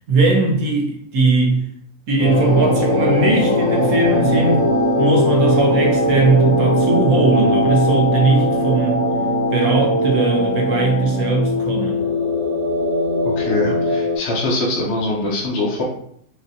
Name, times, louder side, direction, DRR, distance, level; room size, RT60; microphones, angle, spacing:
voice 1, 0.0-1.6 2.1-4.7 5.0-9.0 9.5-12.1, right 3 dB, 75° right, 0 dB, 1.3 m, -18 dB
sound 1, 2.2-14.2, left 1 dB, 30° right, 1.1 m, -19 dB
voice 2, 13.4-15.8, left 2 dB, 55° left, -3 dB, 0.9 m, -22 dB
5.0 x 2.7 x 2.6 m, 0.67 s
omnidirectional pair, 1.5 m